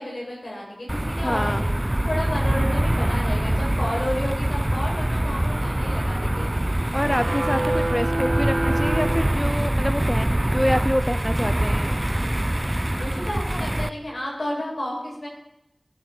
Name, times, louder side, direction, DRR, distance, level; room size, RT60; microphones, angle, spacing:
voice 1, 0.0-1.5 2.1-6.5 13.0-15.3, left 1 dB, 75° left, -3 dB, 7.8 m, -31 dB
sound 1, 0.9-13.9, right 1 dB, 25° right, 0.7 m, -24 dB
voice 2, 1.2-1.6 3.0-3.1 6.9-11.9, equal, 10° left, 11 dB, 0.8 m, -26 dB
sound 2, 7.0-9.9, right 1 dB, 60° right, 1.6 m, -28 dB
21.5 x 12.0 x 4.7 m, 0.84 s
wide cardioid pair, 45°, 0 cm